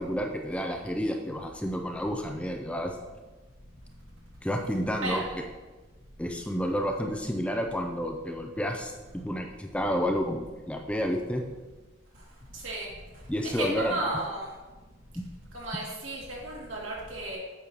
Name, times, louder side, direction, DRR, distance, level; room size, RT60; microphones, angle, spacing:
voice 1, 0.0-2.9 4.4-5.2 6.2-11.4 13.3-14.0, equal, 5° left, 3 dB, 0.4 m, -30 dB
voice 2, 13.6-14.5 15.5-17.4, right 2 dB, 80° right, -4 dB, 2.4 m, -33 dB
8.6 x 6.2 x 2.9 m, 1.3 s
head